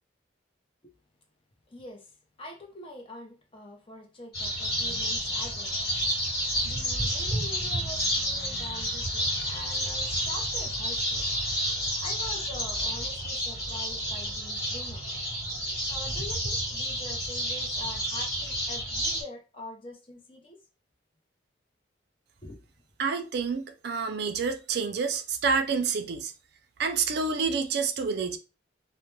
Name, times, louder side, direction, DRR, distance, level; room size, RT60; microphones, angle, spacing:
voice 1, 1.7-2.1 2.4-5.7 6.6-11.3 12.0-15.0 15.8-20.6 22.4-22.6, left 1 dB, 30° left, 0.6 m, -44 dB
sound 1, 4.3-19.2, equal, 55° left, 1.2 m, -30 dB
voice 2, 23.0-26.3 26.8-28.4, right 5 dB, 60° right, 0.4 m, -28 dB
2.2 x 2.1 x 3.1 m
head